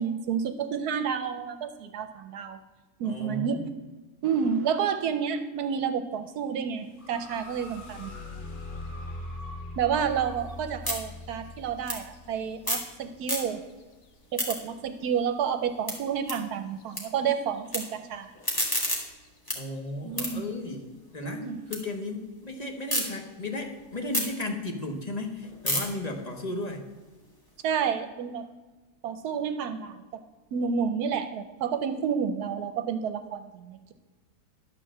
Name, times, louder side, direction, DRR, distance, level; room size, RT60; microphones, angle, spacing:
voice 1, 0.0-2.6 3.0-3.6 4.2-8.1 9.8-13.6 14.3-18.3 20.0-20.4 21.2-21.6 27.6-28.5 29.0-30.0 30.5-33.9, right 7 dB, 75° right, 9 dB, 1.2 m, -30 dB
voice 2, 3.0-3.7 19.5-26.8, left 2 dB, 30° left, 3 dB, 1.0 m, -35 dB
sound 1, 6.9-14.7 16.8-16.9 17.4-17.9 18.5-18.6 19.1-19.5, left 2 dB, 65° left, 0.5 m, -42 dB
sound 2, 7.0-10.6 11.5-11.6, equal, 35° right, 1.6 m, -48 dB
sound 3, 10.0-12.9 13.2-13.8 14.1-17.0 17.3-17.8 18.2-21.8 22.2-23.0 23.5-27.6, equal, 15° left, 1.8 m, -34 dB
11.0 x 4.6 x 7.4 m, 1.2 s
omnidirectional pair, 1.7 m